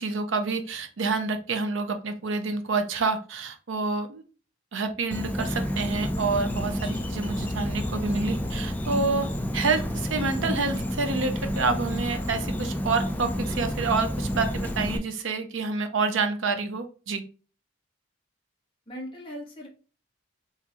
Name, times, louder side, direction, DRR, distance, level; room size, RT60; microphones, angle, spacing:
voice 1, 0.0-4.2 4.7-9.3 9.5-17.2, right 4 dB, 70° right, 7 dB, 0.7 m, -28 dB
Insect, 5.1-15.0, equal, 10° left, 0.4 m, -30 dB
voice 2, 18.9-19.7, equal, 25° left, -2 dB, 1.4 m, -39 dB
3.7 x 3.1 x 2.9 m, 0.36 s
head